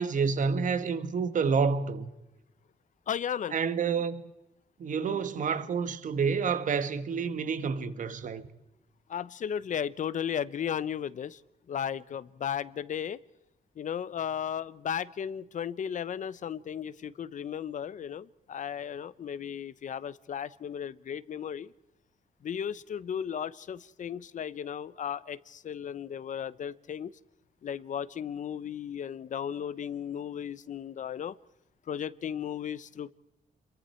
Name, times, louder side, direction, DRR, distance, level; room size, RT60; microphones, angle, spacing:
voice 1, 0.0-2.1 3.5-4.2 4.8-8.5, right 5 dB, 60° right, 1.7 m, -29 dB
voice 2, 3.1-3.6 5.0-5.2 9.1-11.4 11.7-13.2 13.8-21.7 22.4-27.1 27.6-31.3 31.9-33.1, left 8 dB, 60° left, 0.9 m, -35 dB
28.5 x 23.0 x 4.5 m
cardioid pair, 110°, 15 cm